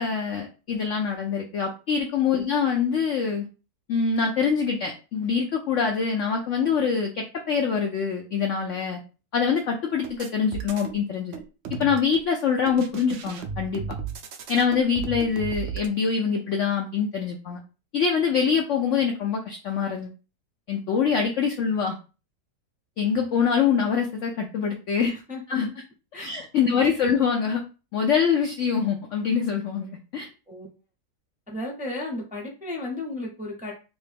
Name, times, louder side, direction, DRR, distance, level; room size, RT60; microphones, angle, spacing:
voice 1, 0.0-3.4 3.9-9.0 9.3-11.4 11.7-13.8 14.5-17.6 17.9-20.1 20.7-22.0 23.0-25.1 25.5-25.7 26.2-27.6 27.9-30.3, left 6 dB, 75° left, 2 dB, 0.7 m, -24 dB
sound 1, 10.0-11.0 11.3-12.3 12.7-15.9, right 6 dB, 80° right, 0.6 m, -35 dB
voice 2, 25.0-25.4 26.1-26.8 30.5-30.7 31.5-33.7, left 2 dB, 10° right, -2 dB, 0.4 m, -34 dB
3.0 x 2.8 x 3.4 m, 0.32 s
omnidirectional pair, 1.9 m